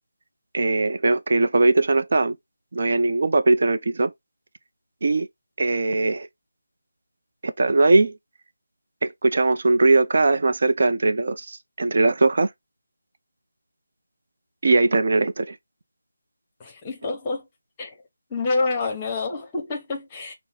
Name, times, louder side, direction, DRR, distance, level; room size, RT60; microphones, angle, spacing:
voice 1, 0.5-2.4 2.7-4.1 5.0-5.3 5.6-6.3 7.4-8.2 9.0-12.5 14.6-15.6, right 3 dB, 50° right, 0.5 m, -20 dB
voice 2, 16.6-17.5 17.8-18.0 18.3-20.3, left 3 dB, 15° left, 0.8 m, -27 dB
5.4 x 2.0 x 4.2 m
figure-of-eight pair, 170°, 0 cm